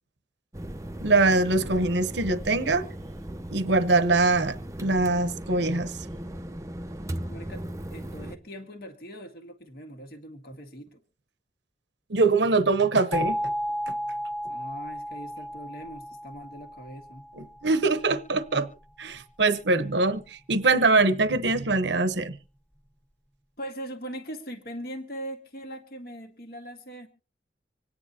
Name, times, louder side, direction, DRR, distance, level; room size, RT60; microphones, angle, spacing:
sound 1, 0.5-8.4, right 1 dB, 15° right, 0.6 m, -37 dB
voice 1, 1.0-2.8 3.5-5.9 12.1-13.4 13.9-14.0 17.4-18.7 19.0-22.4, right 3 dB, 75° right, 0.9 m, -23 dB
voice 2, 7.3-7.6 7.9-11.0 14.5-17.2 23.6-27.1, equal, 55° left, 1.7 m, -40 dB
sound 2, 13.1-17.9, left 1 dB, 10° left, 1.3 m, -33 dB
25.5 x 9.9 x 2.8 m
head